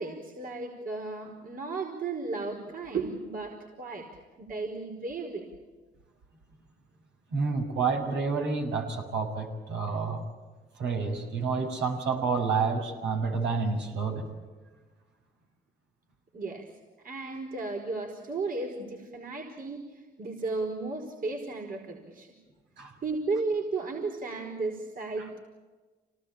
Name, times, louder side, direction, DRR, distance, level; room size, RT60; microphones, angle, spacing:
voice 1, 0.0-4.1 4.4-5.5 16.3-16.6 17.0-19.9 20.2-22.3 23.0-25.4, right 3 dB, 50° right, 2 dB, 4.9 m, -34 dB
voice 2, 7.3-10.2 10.8-14.2 22.8-22.9 25.2-25.3, right 4 dB, 70° right, 2 dB, 6.8 m, -29 dB
27.5 x 19.0 x 8.7 m, 1.3 s
supercardioid pair, 70°, 18 cm